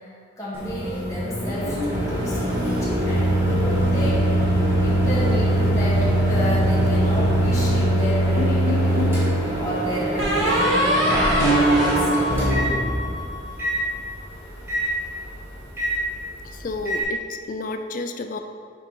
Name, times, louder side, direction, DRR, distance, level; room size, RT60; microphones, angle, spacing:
voice 1, 0.0-4.5 4.8-9.2 9.6-10.8 11.3-12.5, equal, 15° left, -9 dB, 1.6 m, -31 dB
Microwave oven, 0.5-17.0, right 1 dB, 15° right, 1.6 m, -23 dB
sound 1, 1.9-7.8, equal, 70° right, 0.7 m, -29 dB
sound 2, 8.4-9.2 10.2-13.5, equal, 85° right, 1.6 m, -21 dB
voice 2, 16.4-18.4, left 2 dB, 40° left, 7 dB, 0.4 m, -32 dB
6.2 x 4.6 x 4.5 m, 2.2 s
head